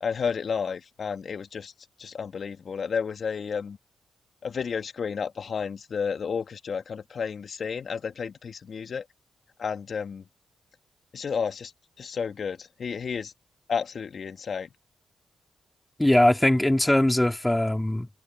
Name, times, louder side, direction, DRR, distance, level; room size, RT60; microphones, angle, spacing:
voice 1, 0.0-1.7 2.0-3.8 4.4-9.0 9.6-10.2 11.1-11.7 12.0-13.3 13.7-14.7, left 6 dB, 60° left, 2.2 m, -31 dB
voice 2, 16.0-18.1, left 1 dB, 15° left, 2.5 m, -21 dB
supercardioid pair, 45°, 0 cm